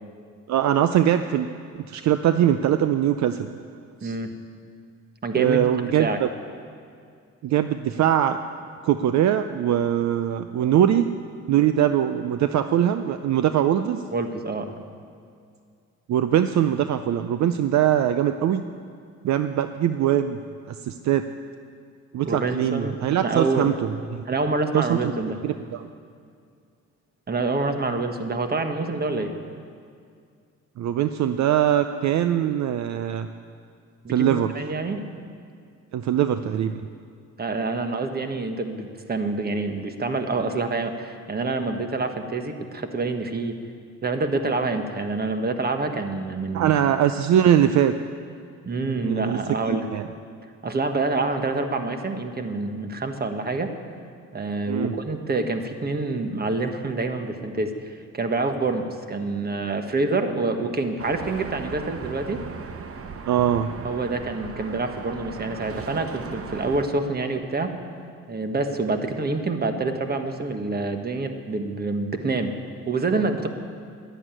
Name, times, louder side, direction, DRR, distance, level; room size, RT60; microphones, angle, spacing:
voice 1, 0.5-1.5 1.9-3.5 4.0-4.2 5.4-6.3 7.4-8.4 8.8-11.1 11.5-14.0 16.1-18.6 19.2-20.4 20.7-21.2 22.1-24.2 24.7-25.1 25.4-25.9 30.8-33.3 34.1-34.5 35.9-36.7 46.5-47.9 48.7-49.4 49.7-50.1 54.7-54.9 63.3-63.7, right 10 dB, 65° right, 10 dB, 0.6 m, -22 dB
voice 2, 5.2-5.6 6.0-6.2 14.1-14.8 22.2-23.7 24.3-25.4 27.3-29.3 34.0-35.2 37.4-43.6 44.0-46.8 48.6-49.9 50.6-53.7 54.3-62.4 63.8-67.7 68.3-72.5 72.9-73.5, right 3 dB, 30° right, 6 dB, 1.4 m, -27 dB
sound 1, 61.0-66.9, right 5 dB, 50° right, 1.0 m, -37 dB
11.5 x 11.0 x 9.0 m, 2.3 s
cardioid pair, 90°, 30 cm